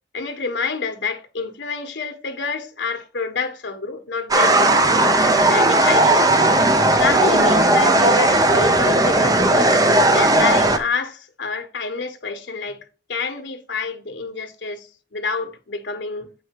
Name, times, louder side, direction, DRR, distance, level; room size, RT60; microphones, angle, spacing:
voice 1, 0.1-4.8 5.5-6.3 7.0-9.7 10.1-12.8 13.1-16.3, left 4 dB, 80° left, 1.1 m, -28 dB
sound 1, 4.3-10.8, right 2 dB, 20° right, 0.6 m, -16 dB
8.1 x 5.0 x 2.9 m
head